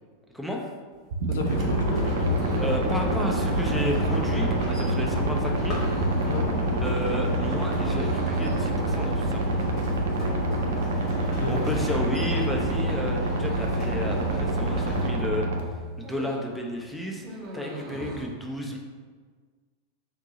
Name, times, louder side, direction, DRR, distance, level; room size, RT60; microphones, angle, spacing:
voice 1, 0.3-0.6 2.6-5.8 6.8-9.4 11.5-18.8, left 1 dB, ahead, -1 dB, 0.6 m, -32 dB
sound 1, 1.1-15.6, right 2 dB, 55° right, 0.5 m, -28 dB
sound 2, 1.2-15.3 15.6-16.6 16.8-18.3, right 1 dB, 30° right, 1.0 m, -42 dB
voice 2, 1.3-2.0 6.3-6.4 11.2-12.0, left 5 dB, 60° left, 4 dB, 0.3 m, -33 dB
sound 3, 1.4-15.1, equal, 35° left, 1.5 m, -30 dB
3.9 x 2.7 x 3.8 m, 1.5 s
figure-of-eight pair, 90°, 0 cm